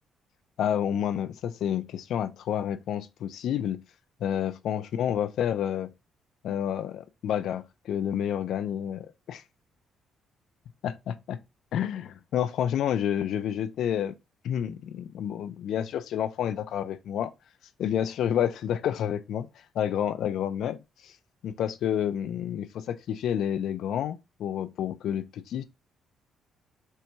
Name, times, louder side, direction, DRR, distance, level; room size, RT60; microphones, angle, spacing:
voice 1, 0.6-3.8 4.2-5.9 6.4-9.4 10.8-11.4 11.7-14.2 14.4-17.3 17.8-19.5 19.7-20.8 21.0-21.1 21.4-25.6, left 9 dB, 75° left, 0.4 m, -29 dB
4.4 x 2.2 x 2.7 m
cardioid pair, 90°, 0 cm